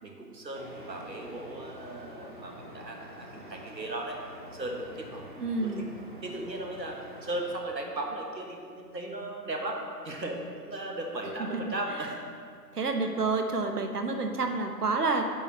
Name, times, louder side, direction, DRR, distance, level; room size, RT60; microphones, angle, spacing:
voice 1, 0.0-4.2 4.5-5.3 5.6-5.9 6.2-9.8 10.0-12.1 14.1-14.2, right 1 dB, 85° right, 1 dB, 1.5 m, -37 dB
sound 1, 0.5-7.6, equal, 30° right, 0.6 m, -47 dB
voice 2, 5.4-5.9 11.4-11.6 11.9-12.0 12.7-15.3, right 3 dB, 65° right, 5 dB, 1.0 m, -29 dB
8.6 x 4.4 x 6.1 m, 2.1 s
figure-of-eight pair, 145°, 50 cm